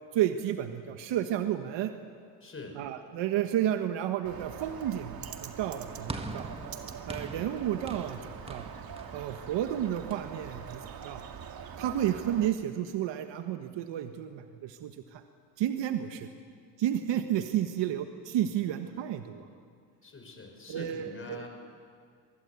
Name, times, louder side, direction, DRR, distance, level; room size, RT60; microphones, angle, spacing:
voice 1, 0.1-1.9 2.8-6.5 7.1-8.2 8.5-8.7 9.1-11.2 11.8-15.2 15.6-16.3 16.8-19.5 20.7-21.5, right 11 dB, 70° right, 7 dB, 1.5 m, -31 dB
voice 2, 2.4-2.8 20.0-21.5, left 3 dB, 25° left, 3 dB, 6.3 m, -44 dB
Bird, 4.2-12.5, right 7 dB, 50° right, 2.1 m, -43 dB
sound 1, 6.1-10.5, right 2 dB, 10° right, 1.7 m, -43 dB
26.0 x 20.0 x 8.5 m, 2.2 s
cardioid pair, 105°, 46 cm